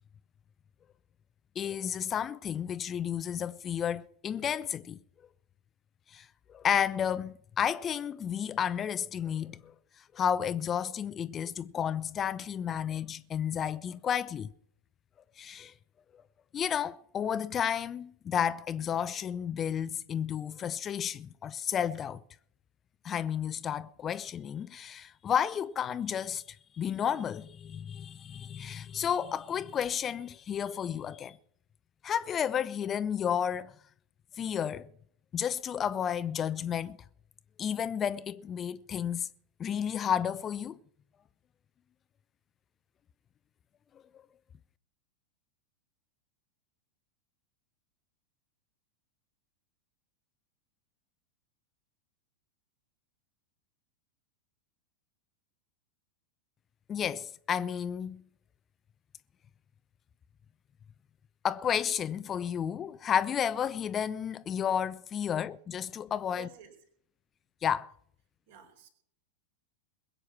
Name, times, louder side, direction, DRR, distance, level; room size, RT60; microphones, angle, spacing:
voice 1, 1.6-5.0 6.1-14.5 15.4-15.7 16.5-22.2 23.0-31.4 32.0-33.7 34.4-34.9 35.3-37.0 37.6-39.3 39.6-40.8 56.9-58.2 61.4-66.5 67.6-67.9, left 8 dB, 25° left, 0.5 m, -32 dB
voice 2, 66.3-66.7 68.5-68.9, right 8 dB, 55° right, 4.4 m, -51 dB
21.5 x 8.9 x 5.9 m
figure-of-eight pair, 90°, 0 cm